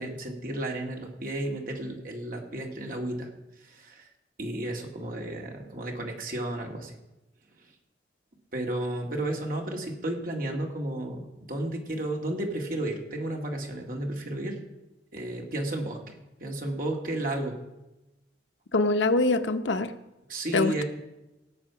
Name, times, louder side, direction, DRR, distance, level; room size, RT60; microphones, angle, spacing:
voice 1, 0.0-3.3 3.6-4.1 4.4-7.0 8.5-14.6 15.1-17.6 20.3-20.8, right 1 dB, 50° right, 1 dB, 2.1 m, -33 dB
voice 2, 18.7-19.9 20.5-20.8, left 2 dB, 85° left, 9 dB, 0.8 m, -24 dB
17.5 x 7.8 x 5.8 m, 1.0 s
head